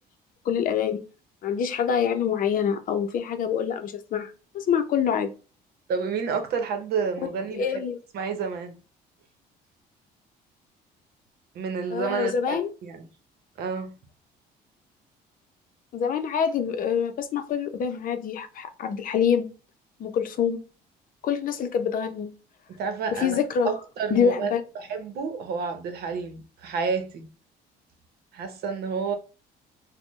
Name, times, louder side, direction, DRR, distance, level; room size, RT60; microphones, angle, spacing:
voice 1, 0.5-1.0 1.4-5.3 7.5-8.0 11.9-12.7 15.9-19.5 20.0-20.6 21.2-22.3 23.1-23.7 24.1-24.6, left 7 dB, 55° left, 0.6 m, -25 dB
voice 2, 5.9-7.8 8.1-8.7 11.5-13.0 13.6-13.9 22.7-23.4 23.6-24.5 24.7-27.3 28.3-29.1, right 5 dB, 70° right, 0.8 m, -30 dB
4.2 x 2.2 x 3.1 m
cardioid pair, 110°, 17 cm